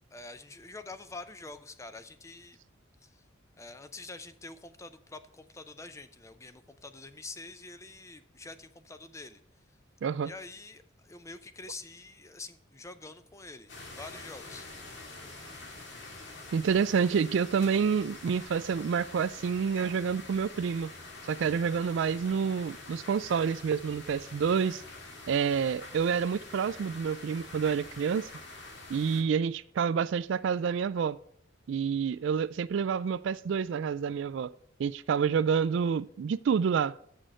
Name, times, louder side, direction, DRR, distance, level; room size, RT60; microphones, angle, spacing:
voice 1, 0.1-2.6 3.0-3.2 3.6-9.4 10.2-13.7 14.0-14.7, left 3 dB, 15° left, 0.5 m, -46 dB
sound 1, 13.7-29.2, left 2 dB, 60° left, 2.1 m, -46 dB
voice 2, 16.5-20.9 21.3-24.8 25.3-28.3 28.9-31.2 31.7-34.5 34.8-36.9, right 6 dB, 60° right, 0.3 m, -28 dB
7.6 x 6.3 x 6.5 m
head